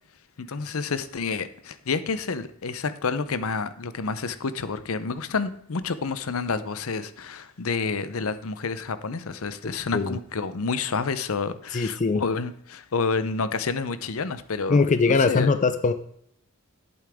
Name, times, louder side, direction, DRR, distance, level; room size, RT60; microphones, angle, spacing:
voice 1, 0.4-15.5, left 4 dB, 65° left, 13 dB, 0.7 m, -29 dB
voice 2, 11.7-12.2 14.7-15.9, left 4 dB, 35° left, 10 dB, 0.5 m, -21 dB
11.0 x 8.7 x 3.5 m, 0.67 s
head